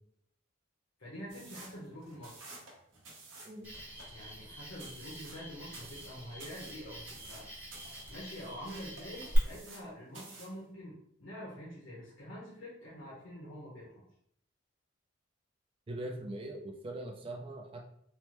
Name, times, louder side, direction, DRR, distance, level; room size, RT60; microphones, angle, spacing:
voice 1, 1.0-2.5 4.1-7.4 8.1-14.0, equal, 90° left, -8 dB, 0.9 m, -46 dB
sound 1, 1.3-9.9 10.1-10.6, right 3 dB, 70° right, 0.8 m, -52 dB
Cricket, 3.6-9.4, equal, 10° right, 0.8 m, -46 dB
voice 2, 15.9-17.8, right 1 dB, 25° right, 2 dB, 0.4 m, -41 dB
3.2 x 2.1 x 2.9 m, 0.70 s
head